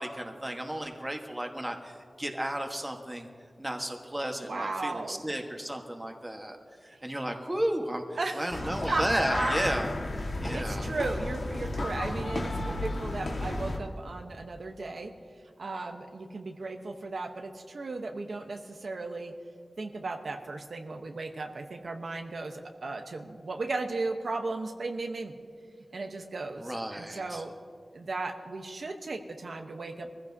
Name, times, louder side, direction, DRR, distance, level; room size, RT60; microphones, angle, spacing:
voice 1, 0.0-3.3 3.6-6.6 6.8-8.0 8.3-9.9 10.1-10.9 26.6-27.4, right 1 dB, 15° right, 3 dB, 1.4 m, -33 dB
voice 2, 4.4-5.2 8.2-9.0 9.3-9.6 10.5-15.1 15.6-19.3 19.8-25.3 25.9-27.5 27.9-30.1, right 3 dB, 80° right, 4 dB, 1.0 m, -35 dB
sound 1, 8.5-13.8, left 2 dB, 85° left, 1.6 m, -33 dB
23.5 x 15.0 x 2.8 m, 2.1 s
wide cardioid pair, 80°, 0 cm